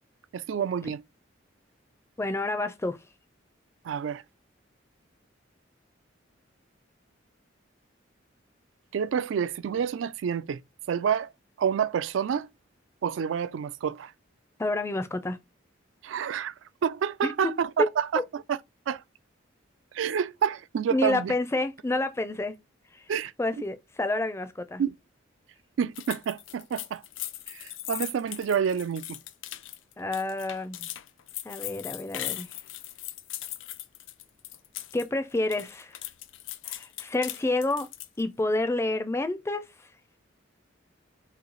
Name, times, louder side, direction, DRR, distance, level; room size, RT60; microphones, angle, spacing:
voice 1, 0.3-1.0 3.8-4.2 8.9-10.6 10.9-11.3 11.6-12.5 13.0-14.1 16.0-16.5 16.8-18.1 18.9-19.0 19.9-21.3 23.1-23.3 24.8-24.9 25.8-27.0 27.5-29.2, right 7 dB, 75° right, 0.3 m, -28 dB
voice 2, 2.2-3.0 14.6-15.4 17.2-17.5 17.8-17.9 20.9-22.6 22.9-23.1 23.4-24.8 30.0-30.9 31.4-32.6 34.9-36.0 36.6-37.9 38.2-39.9, left 2 dB, 15° left, 0.4 m, -29 dB
sound 1, 26.0-35.1 35.4-38.2, left 14 dB, 80° left, 0.4 m, -39 dB
3.2 x 2.7 x 3.8 m
head